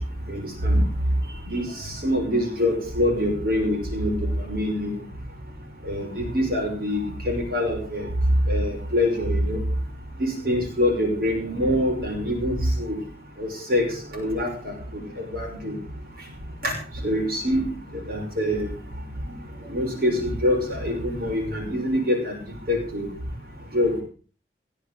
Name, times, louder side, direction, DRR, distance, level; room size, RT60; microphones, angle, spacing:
voice 1, 0.3-0.8 1.5-1.7 2.0-4.1 4.5-4.9 5.9-7.0 7.3-8.1 8.5-9.6 10.4-13.0 13.4-13.8 14.1-14.5 15.3-15.7 16.6-16.7 17.0-17.7 18.1-18.7 19.7-22.3 22.7-23.1 23.7-24.0, left 1 dB, 55° right, 1 dB, 5.9 m, -24 dB
20.0 x 7.7 x 7.9 m, 0.40 s
head